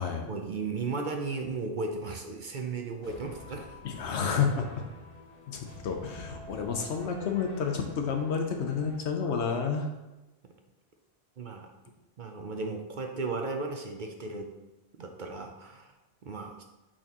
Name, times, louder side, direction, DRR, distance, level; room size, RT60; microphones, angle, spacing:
voice 1, 0.3-3.8 11.4-11.7 12.2-14.5 15.0-15.9 16.2-16.6, right 3 dB, 55° right, 4 dB, 0.7 m, -35 dB
sound 1, 3.0-9.0, left 1 dB, 40° left, 1.2 m, -47 dB
voice 2, 3.8-4.7 5.5-9.9, left 6 dB, 85° left, 4 dB, 1.0 m, -30 dB
8.7 x 4.3 x 2.9 m, 1.0 s
omnidirectional pair, 1.1 m